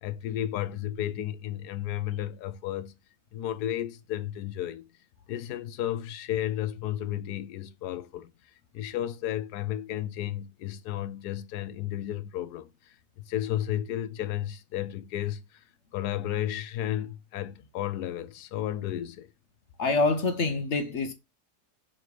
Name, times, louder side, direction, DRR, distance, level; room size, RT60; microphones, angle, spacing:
voice 1, 0.0-3.0 3.3-4.9 5.3-8.3 8.7-15.6 15.9-19.3, left 12 dB, 85° left, 1.2 m, -33 dB
voice 2, 19.8-21.1, left 3 dB, 55° left, 0.9 m, -26 dB
6.3 x 3.2 x 4.7 m
omnidirectional pair, 1.7 m